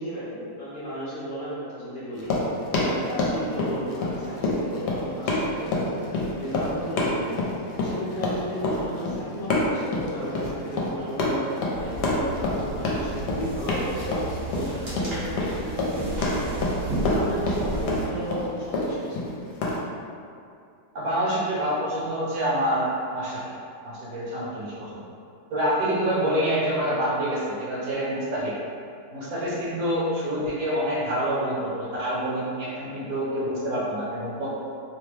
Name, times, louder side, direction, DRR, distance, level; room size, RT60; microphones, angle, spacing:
voice 1, 0.0-2.3 2.7-6.1 6.4-7.5 7.8-14.2 14.5-16.6 17.0-19.4, equal, 50° left, -10 dB, 0.6 m, -34 dB
Run, 2.1-19.8, left 2 dB, 75° left, 1.2 m, -27 dB
sound 1, 11.7-18.1, right 2 dB, 45° right, 0.9 m, -33 dB
voice 2, 20.9-23.5 23.8-25.0 25.5-28.6 29.1-34.5, right 1 dB, 60° right, -8 dB, 1.2 m, -27 dB
3.0 x 2.1 x 3.2 m, 2.5 s
omnidirectional pair, 1.8 m